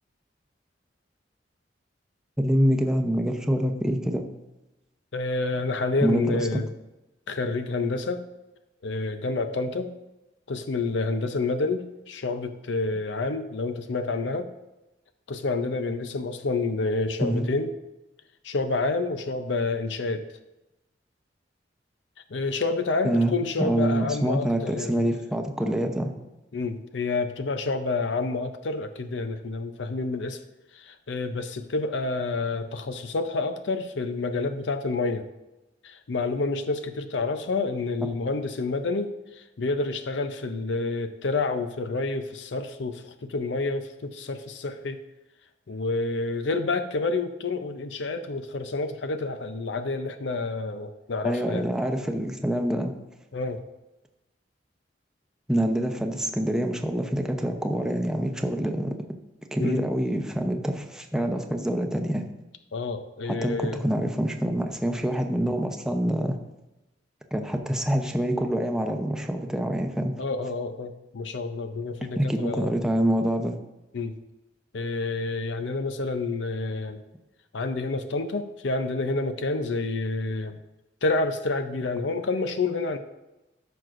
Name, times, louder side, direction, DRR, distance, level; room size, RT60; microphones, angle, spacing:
voice 1, 2.4-4.3 6.0-6.4 17.2-17.5 23.0-23.3 23.6-26.1 51.2-52.9 55.5-58.9 59.5-62.3 63.3-66.4 67.3-70.2 72.0-73.6, right 1 dB, 5° right, 3 dB, 0.7 m, -26 dB
voice 2, 5.1-6.7 7.3-8.2 8.8-9.9 10.5-14.5 15.3-17.7 18.4-20.3 22.3-25.2 26.5-30.4 30.7-35.3 35.8-45.0 45.7-51.7 53.3-53.6 59.6-59.8 62.7-63.8 70.2-73.1 73.9-74.2 74.7-77.0 77.5-80.6 81.0-83.0, left 3 dB, 75° left, 8 dB, 0.6 m, -29 dB
14.0 x 6.0 x 2.6 m, 0.98 s
head